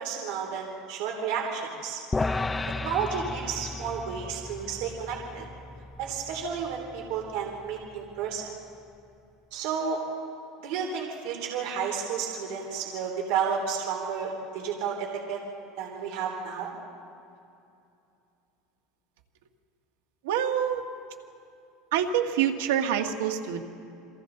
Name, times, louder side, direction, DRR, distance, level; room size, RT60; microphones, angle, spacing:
voice 1, 0.0-2.0 2.8-5.5 6.0-8.5 9.5-10.0 10.6-15.4 15.8-16.7, right 6 dB, 65° right, 0 dB, 3.2 m, -32 dB
sound 1, 2.1-8.5, left 3 dB, 10° left, 0.4 m, -35 dB
voice 2, 20.2-20.8 21.9-23.6, right 9 dB, 90° right, 4 dB, 1.6 m, -26 dB
30.0 x 23.0 x 3.9 m, 2.7 s
supercardioid pair, 155°, 0 cm